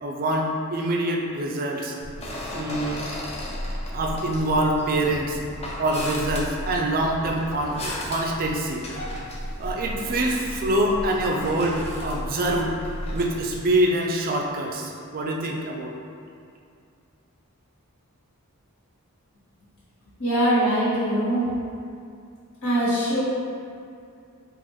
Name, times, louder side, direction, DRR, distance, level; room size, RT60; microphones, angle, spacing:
voice 1, 0.0-1.9 2.5-3.0 3.9-5.4 5.8-7.8 8.1-8.8 9.6-12.8 13.1-15.9, right 1 dB, 40° right, 0 dB, 0.4 m, -25 dB
sound 1, 2.0-13.7, left 1 dB, 30° left, 0.5 m, -34 dB
voice 2, 20.2-21.5 22.6-23.2, right 1 dB, 65° left, -11 dB, 1.4 m, -22 dB
4.0 x 2.5 x 3.1 m, 2.4 s
head